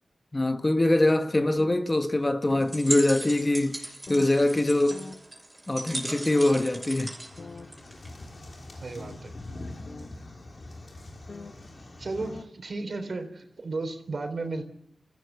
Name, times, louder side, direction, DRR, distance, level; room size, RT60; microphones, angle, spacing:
voice 1, 0.3-5.1 5.7-7.2, left 1 dB, 30° left, 1.3 m, -23 dB
sound 1, 1.6-1.8 2.5-2.7 3.4-3.5 4.1-4.3 4.9-5.2 5.9-6.0 6.5-6.8 7.4-7.7 9.0-9.2 9.9-10.1 11.3-11.5 11.9-12.0 12.2-12.4, left 3 dB, 70° left, 1.5 m, -42 dB
sound 2, 2.6-8.2, right 1 dB, 20° right, 6.0 m, -37 dB
sound 3, 7.2-12.4, left 2 dB, 50° left, 3.5 m, -43 dB
voice 2, 8.7-9.3 12.0-14.6, right 3 dB, 65° right, 3.7 m, -34 dB
28.5 x 14.5 x 8.1 m
cardioid pair, 60°, 0 cm